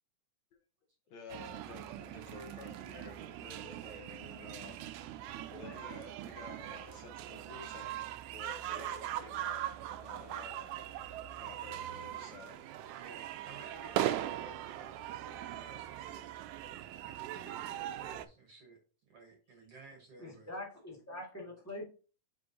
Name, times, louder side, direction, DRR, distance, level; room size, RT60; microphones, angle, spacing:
voice 1, 1.1-4.8 5.5-8.0 8.3-9.7 9.9-10.7 11.4-12.6, left 5 dB, 65° left, 3 dB, 1.9 m, -52 dB
sound 1, 1.3-18.3, right 12 dB, 85° right, 1.7 m, -40 dB
voice 2, 12.9-16.4 17.0-20.5, right 3 dB, 60° right, 3 dB, 1.7 m, -55 dB
voice 3, 20.2-21.9, left 1 dB, 10° left, -4 dB, 0.8 m, -44 dB
8.3 x 5.2 x 2.7 m, 0.36 s
omnidirectional pair, 4.0 m